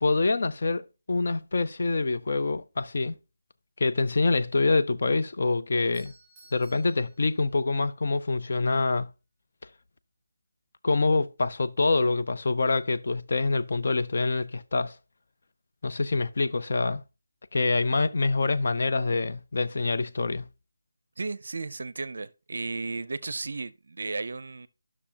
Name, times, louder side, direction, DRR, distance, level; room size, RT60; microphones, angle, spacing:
voice 1, 0.0-3.1 3.8-6.1 6.5-9.1 10.8-15.0 15.8-17.0 17.5-20.5, left 3 dB, 40° left, 0.4 m, -26 dB
Doorbell, 5.7-7.9, right 2 dB, 5° left, 4.3 m, -58 dB
voice 2, 21.2-24.7, right 3 dB, 50° right, 0.5 m, -34 dB
11.5 x 6.0 x 2.8 m
figure-of-eight pair, 180°, 0 cm